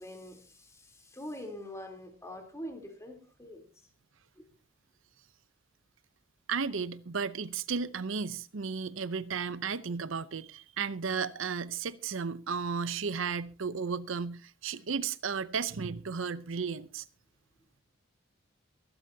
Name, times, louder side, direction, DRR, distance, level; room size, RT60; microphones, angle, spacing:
voice 1, 0.0-3.7 4.4-4.5, left 1 dB, 15° left, 3.3 m, -44 dB
voice 2, 6.5-17.1, right 5 dB, 75° right, 0.7 m, -34 dB
23.5 x 12.0 x 2.8 m
head